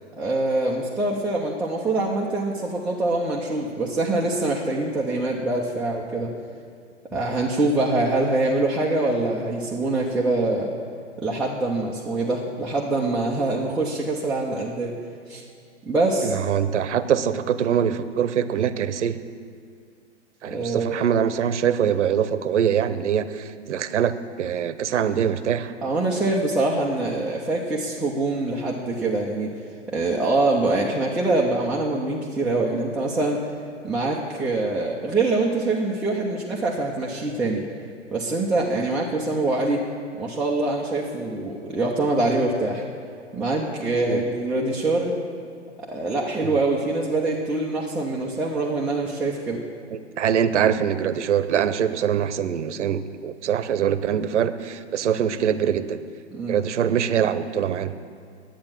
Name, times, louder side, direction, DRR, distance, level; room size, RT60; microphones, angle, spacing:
voice 1, 0.2-6.3 7.1-10.7 11.2-15.0 15.3-15.4 15.8-16.4 20.4-21.0 25.8-29.5 29.9-33.4 33.8-37.6 38.1-39.8 40.2-42.8 43.3-45.2 45.8-49.6 56.3-56.6, right 2 dB, ahead, -5 dB, 0.4 m, -24 dB
voice 2, 16.2-19.2 20.4-25.7 44.1-44.2 46.4-46.5 49.9-56.0 56.5-57.9, right 8 dB, 75° right, 13 dB, 0.8 m, -23 dB
10.0 x 8.8 x 7.3 m, 2.3 s
hypercardioid pair, 130°, 36 cm